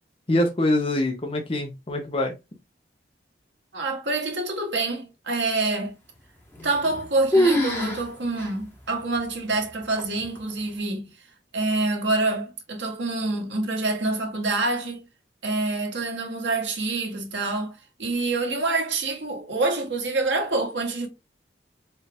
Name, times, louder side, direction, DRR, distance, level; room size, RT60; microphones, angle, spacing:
voice 1, 0.3-2.3, left 1 dB, 30° left, 0.7 m, -24 dB
voice 2, 3.7-5.9 6.6-11.1 11.5-15.0 15.4-21.1, right 2 dB, 90° right, 1.4 m, -26 dB
sound 1, 6.5-7.0 7.3-8.0 8.4-8.5 9.2-9.3 10.0-10.4, equal, 10° left, 1.1 m, -22 dB
4.4 x 2.4 x 3.4 m
head